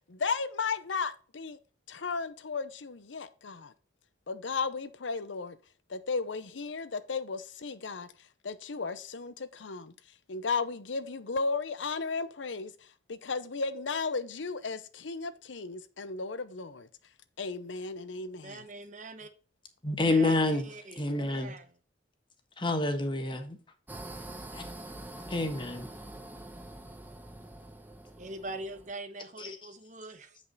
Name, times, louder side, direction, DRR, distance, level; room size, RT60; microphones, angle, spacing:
voice 1, 0.1-1.6 1.9-3.7 4.3-5.6 5.9-8.1 8.4-9.9 10.3-12.7 13.1-16.9 17.4-18.6, left 4 dB, 90° left, 0.8 m, -34 dB
voice 2, 18.4-19.3 20.1-21.8 28.2-30.4, right 2 dB, 40° right, 0.9 m, -43 dB
voice 3, 19.8-20.7 21.0-21.5 22.6-23.6 24.5-24.6 25.3-25.9 29.4-29.5, left 2 dB, 25° left, 1.3 m, -28 dB
sound 1, 23.9-28.9, right 1 dB, 10° right, 0.8 m, -45 dB
8.3 x 5.4 x 4.0 m
head